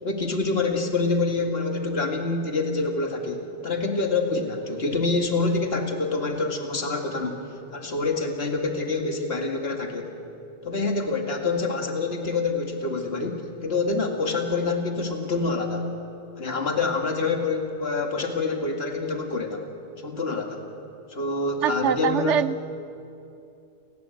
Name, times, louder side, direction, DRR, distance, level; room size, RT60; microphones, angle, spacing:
voice 1, 0.0-7.3 7.7-10.1 10.6-15.9 16.4-19.7 20.0-20.6 21.1-22.4, left 3 dB, 60° left, 2 dB, 2.4 m, -26 dB
voice 2, 21.6-22.6, right 9 dB, 85° right, 15 dB, 1.1 m, -24 dB
29.5 x 19.5 x 7.9 m, 2.6 s
omnidirectional pair, 1.2 m